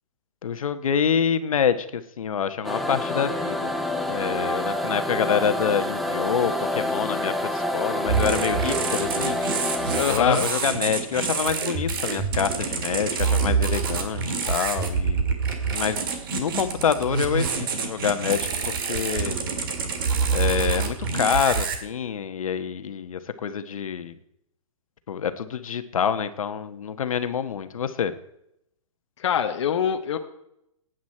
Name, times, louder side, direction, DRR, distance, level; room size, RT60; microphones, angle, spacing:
voice 1, 0.4-3.7 4.1-9.4 10.1-15.4 15.7-16.1 16.3-18.5 18.9-19.4 20.3-24.1 25.1-28.1, left 7 dB, 80° left, 11 dB, 1.2 m, -26 dB
sound 1, 2.6-10.0, left 1 dB, ahead, 0.4 m, -27 dB
sound 2, 8.1-21.8, right 5 dB, 40° right, 2.1 m, -26 dB
voice 2, 9.9-10.4 29.2-30.2, left 8 dB, 55° left, 6 dB, 1.0 m, -24 dB
17.0 x 9.3 x 4.4 m, 0.79 s
hypercardioid pair, 170°, 17 cm